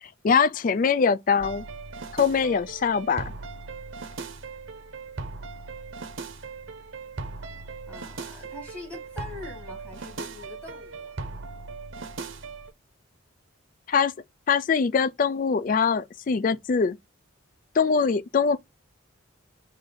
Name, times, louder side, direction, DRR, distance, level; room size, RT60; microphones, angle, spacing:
voice 1, 0.0-1.6 2.1-3.2 13.9-14.1 14.5-17.0 17.7-18.6, left 5 dB, 40° left, 0.3 m, -23 dB
sound 1, 1.4-12.7, right 4 dB, 65° right, 0.7 m, -38 dB
voice 2, 7.9-11.2, left 2 dB, 5° left, 1.8 m, -43 dB
5.1 x 2.7 x 3.9 m
head